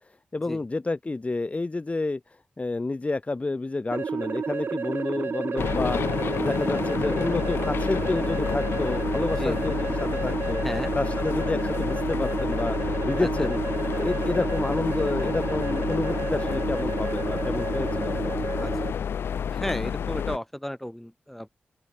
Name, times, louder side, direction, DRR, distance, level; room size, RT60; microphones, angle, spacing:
voice 1, 0.0-10.6 10.9-13.6 14.0-18.5, left 3 dB, 35° left, 1.5 m, -30 dB
sound 1, 3.9-18.9, right 6 dB, 70° right, 0.9 m, -30 dB
sound 2, 5.6-20.4, left 7 dB, 90° left, 4.9 m, -29 dB
voice 2, 13.2-13.5 18.6-18.9 19.5-21.5, equal, 5° left, 5.9 m, -34 dB
open air
cardioid pair, 50°, 4 cm